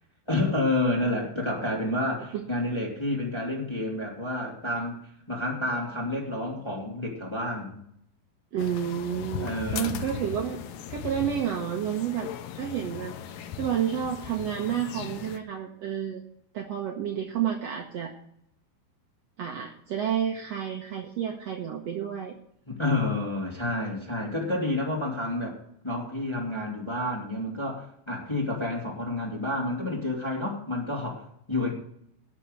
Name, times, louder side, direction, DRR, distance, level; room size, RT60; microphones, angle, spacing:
voice 1, 0.3-5.0 5.3-7.8 9.4-10.2 22.7-25.6 25.8-31.7, left 2 dB, 10° left, -2 dB, 2.0 m, -29 dB
voice 2, 8.5-10.6 10.9-16.2 16.5-18.1 19.4-22.3, right 9 dB, 80° right, 2 dB, 1.4 m, -30 dB
sound 1, 8.6-15.4, left 7 dB, 75° left, 2.2 m, -38 dB
17.5 x 6.1 x 6.6 m, 0.71 s
omnidirectional pair, 4.6 m